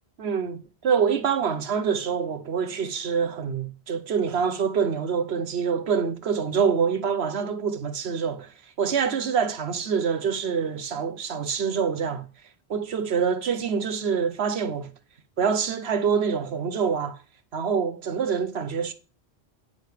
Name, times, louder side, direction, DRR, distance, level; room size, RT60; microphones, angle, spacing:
voice 1, 0.2-12.3 12.7-14.9 15.4-17.2 17.5-18.9, right 6 dB, 75° right, 1.2 m, -26 dB
9.2 x 6.6 x 4.9 m
omnidirectional pair, 1.1 m